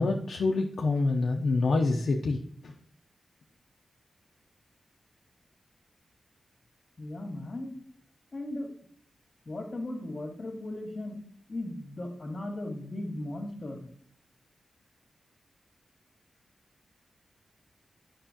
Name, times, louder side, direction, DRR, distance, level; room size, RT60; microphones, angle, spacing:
voice 1, 0.0-2.8, left 3 dB, 70° left, 0 dB, 0.7 m, -27 dB
voice 2, 7.0-7.8 8.3-8.7 9.5-11.2 11.5-13.9, left 1 dB, 35° left, 1 dB, 1.9 m, -37 dB
9.1 x 5.5 x 2.9 m, 0.63 s
wide cardioid pair, 150°, 0 cm